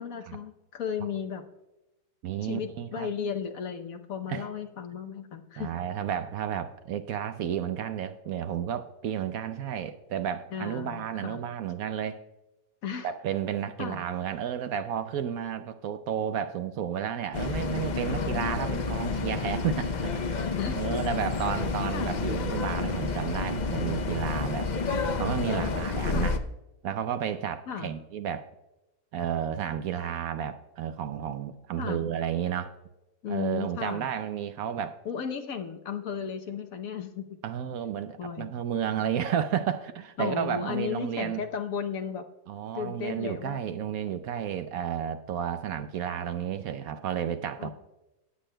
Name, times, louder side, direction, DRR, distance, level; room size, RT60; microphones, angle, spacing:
voice 1, 0.0-1.4 2.4-5.7 10.5-11.4 12.8-13.1 13.8-14.0 18.1-18.3 20.6-21.0 21.9-22.1 26.1-26.3 27.7-27.9 31.8-32.1 33.2-34.0 35.0-37.3 38.2-38.5 40.2-42.2 42.7-43.6 47.6-47.7, left 7 dB, 60° left, 6 dB, 1.2 m, -34 dB
voice 2, 2.2-3.1 4.3-4.5 5.6-12.2 13.0-20.5 20.8-24.7 25.2-26.4 26.8-28.5 29.1-32.7 33.3-35.0 37.4-41.4 42.5-47.7, right 9 dB, 70° right, 10 dB, 1.0 m, -32 dB
sound 1, 17.3-26.4, left 4 dB, 85° left, 0.4 m, -30 dB
17.5 x 8.2 x 2.2 m, 0.97 s
omnidirectional pair, 1.7 m